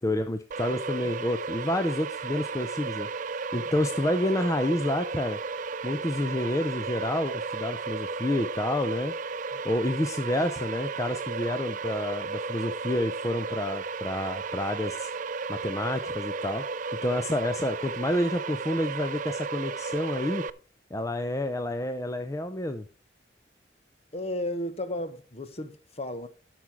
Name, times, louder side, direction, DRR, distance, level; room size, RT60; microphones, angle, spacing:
voice 1, 0.0-3.1 3.5-5.4 5.8-9.1 9.6-15.1 15.5-16.6 17.0-20.4 20.9-22.9, left 1 dB, 20° left, 0.5 m, -29 dB
sound 1, 0.5-20.5, right 4 dB, 45° right, 0.4 m, -34 dB
voice 2, 24.1-26.3, left 1 dB, 35° left, 1.0 m, -34 dB
12.0 x 6.2 x 4.6 m
head